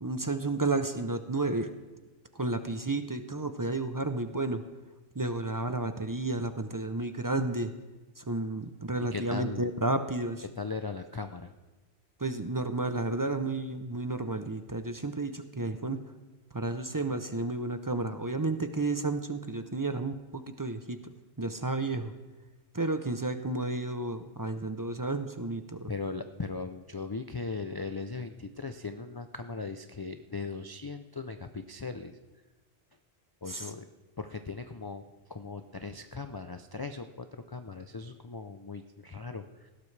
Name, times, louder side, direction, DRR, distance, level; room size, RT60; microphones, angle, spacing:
voice 1, 0.0-1.7 2.3-4.6 5.1-7.7 8.2-10.4 12.2-16.0 16.5-22.1 22.7-25.9 33.5-33.7, right 2 dB, 25° right, 9 dB, 0.5 m, -32 dB
voice 2, 9.1-9.7 10.6-11.5 25.9-32.2 33.4-33.9 34.2-39.7, left 4 dB, 35° left, 8 dB, 0.4 m, -38 dB
19.5 x 16.5 x 3.3 m, 1.2 s
omnidirectional pair, 1.1 m